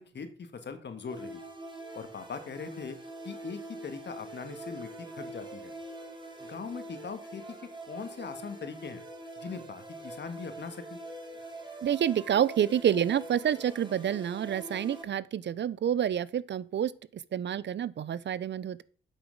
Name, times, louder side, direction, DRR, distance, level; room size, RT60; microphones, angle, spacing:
voice 1, 0.0-1.4 1.9-3.0 3.2-5.7 6.5-7.4 7.8-9.0 9.4-11.0, left 5 dB, 55° left, 1.7 m, -41 dB
sound 1, 1.0-15.0, right 1 dB, 20° right, 2.6 m, -44 dB
voice 2, 11.8-18.8, right 9 dB, 60° right, 0.5 m, -28 dB
8.1 x 6.0 x 5.2 m
cardioid pair, 55°, 21 cm